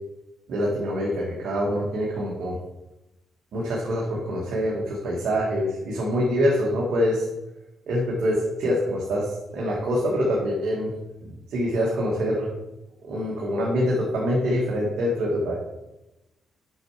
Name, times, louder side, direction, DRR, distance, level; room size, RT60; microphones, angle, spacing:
voice 1, 0.5-2.6 3.5-7.2 7.9-10.9 11.2-12.5 13.1-15.5, equal, 70° right, -4 dB, 1.6 m, -25 dB
6.4 x 5.9 x 4.8 m, 0.99 s
cardioid pair, 90°, 0 cm